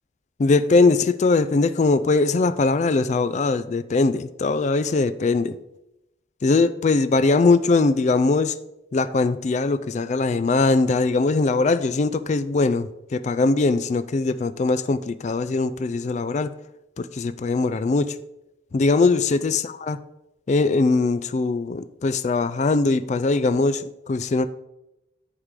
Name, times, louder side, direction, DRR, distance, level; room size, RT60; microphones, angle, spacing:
voice 1, 0.4-5.6 6.4-8.6 8.9-16.5 17.0-18.2 18.7-20.0 20.5-24.5, left 3 dB, 40° left, 14 dB, 0.3 m, -21 dB
9.7 x 3.7 x 4.8 m, 0.91 s
head